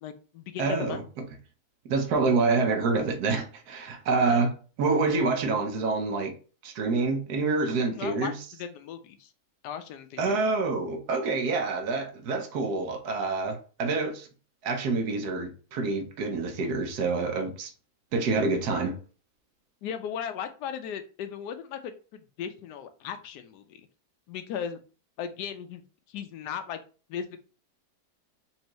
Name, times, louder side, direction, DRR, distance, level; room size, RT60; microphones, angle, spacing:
voice 1, 0.0-1.0 4.3-4.4 7.9-8.3 8.6-9.3 9.6-10.4 19.8-23.8 24.3-24.8 25.2-25.8 26.1-26.8 27.1-27.4, left 8 dB, 80° left, 1.1 m, -37 dB
voice 2, 0.6-1.0 1.8-6.4 6.6-8.4 10.2-14.3 14.6-17.7 18.1-19.0, right 3 dB, 75° right, 1.3 m, -27 dB
4.3 x 2.7 x 3.0 m
omnidirectional pair, 1.7 m